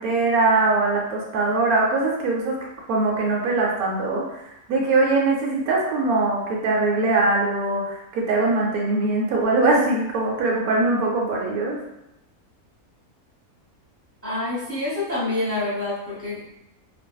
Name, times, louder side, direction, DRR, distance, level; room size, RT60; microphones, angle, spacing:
voice 1, 0.0-2.6 2.9-11.8, right 3 dB, 75° right, -2 dB, 1.0 m, -22 dB
voice 2, 14.2-16.4, left 2 dB, 15° left, -10 dB, 0.7 m, -27 dB
2.5 x 2.2 x 2.2 m, 0.90 s
omnidirectional pair, 1.6 m